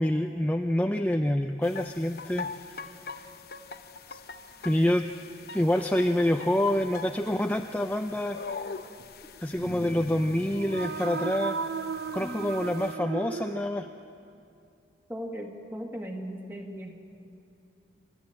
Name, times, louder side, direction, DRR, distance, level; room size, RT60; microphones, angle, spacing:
voice 1, 0.0-2.5 4.1-4.2 4.6-5.1 5.5-8.4 9.4-11.6 12.1-13.9, left 1 dB, 10° left, 5 dB, 0.5 m, -27 dB
sound 1, 1.6-12.9, left 4 dB, 60° left, 0.9 m, -43 dB
sound 2, 10.4-14.2, right 5 dB, 80° right, 0.6 m, -35 dB
voice 2, 12.2-12.7 15.1-16.9, equal, 10° right, 2 dB, 1.9 m, -38 dB
28.0 x 12.5 x 8.8 m, 2.5 s
head